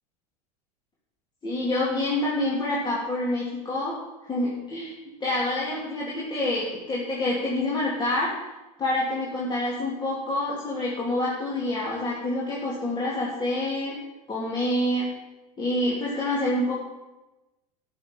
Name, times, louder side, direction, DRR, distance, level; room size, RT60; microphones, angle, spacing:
voice 1, 1.4-4.0 4.3-4.9 5.2-8.3 8.8-14.0 14.3-15.1 15.6-16.8, left 1 dB, 20° left, -6 dB, 3.3 m, -27 dB
13.5 x 7.6 x 5.5 m, 1.0 s
hypercardioid pair, 85°, 20 cm